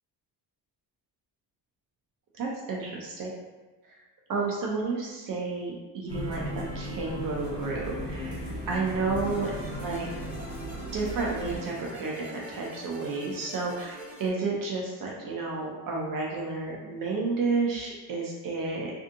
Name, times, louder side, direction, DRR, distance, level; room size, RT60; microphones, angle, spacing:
voice 1, 2.4-3.3 3.8-3.9 4.3-8.4 8.7-9.5 9.8-10.1 10.9-18.9, right 3 dB, 55° right, -3 dB, 0.5 m, -31 dB
sound 1, 6.1-11.6, equal, 35° left, 1.1 m, -36 dB
sound 2, 9.2-14.3, equal, 5° right, 0.5 m, -44 dB
2.6 x 2.5 x 2.5 m, 1.2 s
cardioid pair, 160°, 41 cm